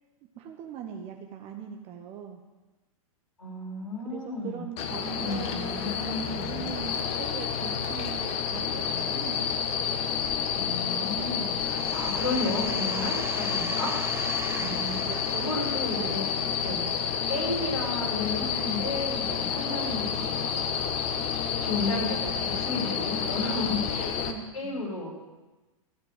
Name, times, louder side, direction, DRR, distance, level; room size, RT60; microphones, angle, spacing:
voice 1, 0.4-2.4 4.0-9.5 14.6-15.5 15.9-16.2 24.2-24.8, right 8 dB, 35° right, 4 dB, 1.0 m, -40 dB
voice 2, 3.4-4.7 5.1-6.6 10.5-14.3 14.6-16.2 16.6-16.9 17.3-20.6 21.6-24.3 24.5-25.1, left 2 dB, 85° left, -2 dB, 5.0 m, -33 dB
sound 1, 4.8-24.3, left 7 dB, 35° left, 1.3 m, -29 dB
sound 2, 11.8-17.3, right 6 dB, 15° right, 0.5 m, -41 dB
14.5 x 5.2 x 9.3 m, 1.2 s
hypercardioid pair, 110°, 18 cm